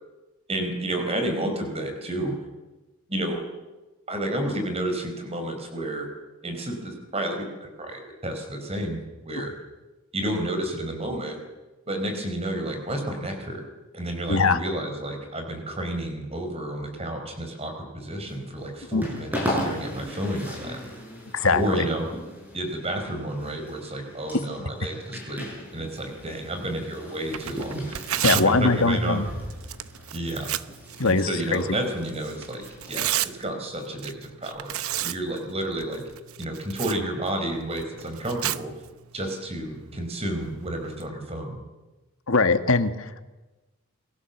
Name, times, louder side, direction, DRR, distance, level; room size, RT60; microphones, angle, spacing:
voice 1, 0.5-2.4 3.1-3.4 4.1-6.1 6.4-9.5 10.1-11.4 11.9-13.6 13.9-20.8 21.5-22.1 22.5-25.5 25.7-28.0 28.3-29.2 30.1-30.5 31.0-34.7 35.0-36.0 36.4-38.7 39.1-41.6, right 1 dB, 25° right, 5 dB, 5.0 m, -31 dB
voice 2, 14.3-14.6 18.9-19.1 21.3-21.9 28.2-29.3 31.0-31.8 42.3-43.2, left 3 dB, 70° left, 8 dB, 1.8 m, -22 dB
sound 1, 18.3-33.4, equal, 10° right, 7.5 m, -37 dB
Tearing, 27.2-41.1, right 12 dB, 75° right, 0.9 m, -34 dB
29.0 x 23.5 x 7.3 m, 1.1 s
head